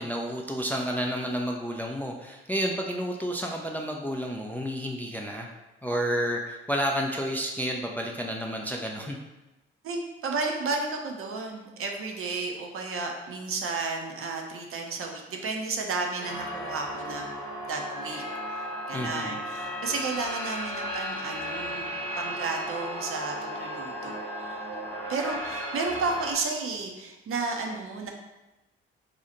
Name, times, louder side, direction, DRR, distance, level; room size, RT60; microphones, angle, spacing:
voice 1, 0.0-5.5 5.8-9.2 18.9-19.4, equal, 5° left, 0 dB, 0.4 m, -30 dB
voice 2, 9.8-17.3 17.7-18.2 18.9-21.9 22.2-24.1 24.4-24.6 25.1-28.1, right 3 dB, 50° right, 2 dB, 0.6 m, -32 dB
sound 1, 16.2-26.3, equal, 75° right, 1.4 m, -35 dB
2.8 x 2.4 x 4.0 m, 1.0 s
figure-of-eight pair, 40°, 29 cm